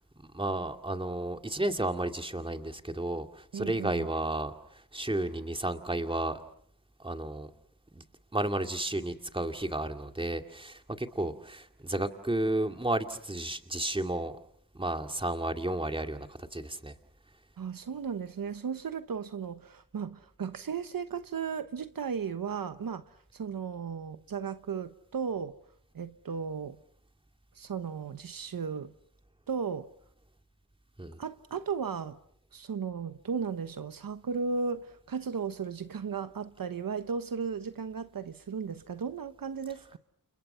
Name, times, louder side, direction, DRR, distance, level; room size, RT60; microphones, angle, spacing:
voice 1, 0.3-6.4 7.0-7.5 7.9-8.0 8.3-14.3 14.7-16.9 31.0-31.2, right 1 dB, 15° right, 2.3 m, -32 dB
voice 2, 3.5-4.1 17.6-25.6 25.9-26.8 27.5-28.9 29.5-29.9 31.2-32.2 32.5-40.0, right 6 dB, 70° right, 1.1 m, -35 dB
30.0 x 28.5 x 5.7 m
wide cardioid pair, 75°, 35 cm